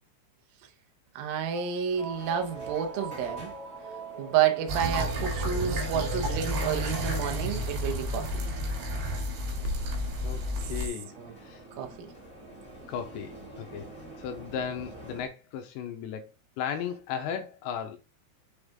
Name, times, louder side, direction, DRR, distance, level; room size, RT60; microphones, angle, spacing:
voice 1, 1.2-3.5 4.2-8.4 11.2-11.3 11.8-12.1, right 9 dB, 80° right, 2.1 m, -30 dB
sound 1, 1.5-7.0, right 4 dB, 40° left, 1.2 m, -43 dB
sound 2, 1.9-15.3, right 1 dB, 10° left, 2.8 m, -49 dB
sound 3, 4.7-10.9, equal, 55° right, 4.2 m, -31 dB
voice 2, 10.2-11.1 11.4-11.6 12.9-13.9 14.2-16.2 16.6-18.0, left 8 dB, 80° left, 2.7 m, -35 dB
7.2 x 5.3 x 3.5 m
omnidirectional pair, 5.7 m